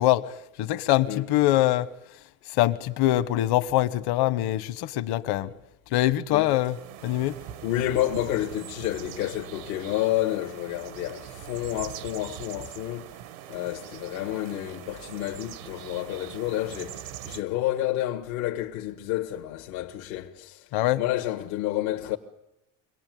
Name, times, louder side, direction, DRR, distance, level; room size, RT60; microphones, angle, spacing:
voice 1, 0.0-1.9 2.5-5.5 5.9-6.8 7.0-7.4 20.7-21.0, left 15 dB, 65° left, 1.4 m, -23 dB
sound 1, 6.3-17.4, right 11 dB, 85° right, 1.5 m, -42 dB
voice 2, 7.6-13.1 13.5-20.7 21.0-22.2, left 14 dB, 85° left, 1.7 m, -30 dB
25.0 x 18.5 x 9.3 m
supercardioid pair, 100°, 41 cm